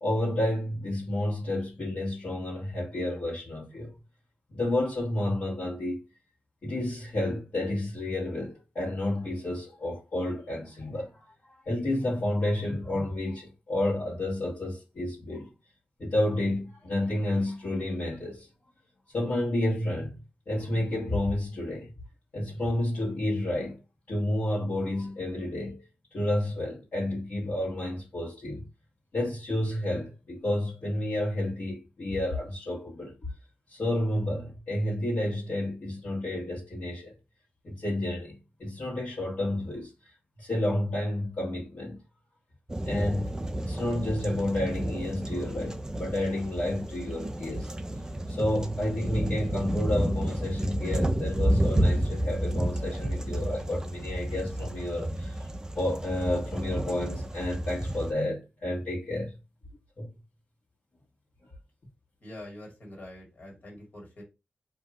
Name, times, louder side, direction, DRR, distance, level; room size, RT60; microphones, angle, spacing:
voice 1, 0.0-3.9 4.5-6.0 6.6-11.2 11.6-15.5 16.0-18.5 19.1-20.2 20.5-21.9 22.3-23.8 24.1-25.8 26.1-28.6 29.1-33.1 33.7-37.1 37.6-39.9 40.4-42.0 42.8-47.7 48.3-55.4 55.7-59.4 60.0-60.1, left 1 dB, 70° left, 1.2 m, -30 dB
sound 1, 42.7-58.1, right 1 dB, 20° right, 0.3 m, -31 dB
voice 2, 62.2-64.2, left 1 dB, 55° left, 1.7 m, -45 dB
2.6 x 2.4 x 2.9 m
wide cardioid pair, 80°, 4 cm